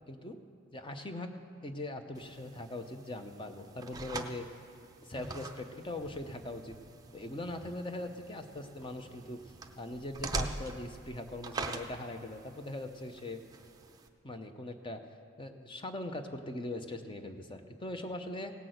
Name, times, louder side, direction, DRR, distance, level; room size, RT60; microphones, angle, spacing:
voice 1, 0.1-0.4 0.7-1.3 1.6-4.5 5.0-6.8 7.1-9.4 9.8-13.4 14.2-15.0 15.4-18.5, left 1 dB, 25° left, 6 dB, 0.7 m, -41 dB
sound 1, 2.1-14.1, right 3 dB, 20° right, 0.6 m, -44 dB
17.0 x 6.0 x 7.8 m, 2.5 s
head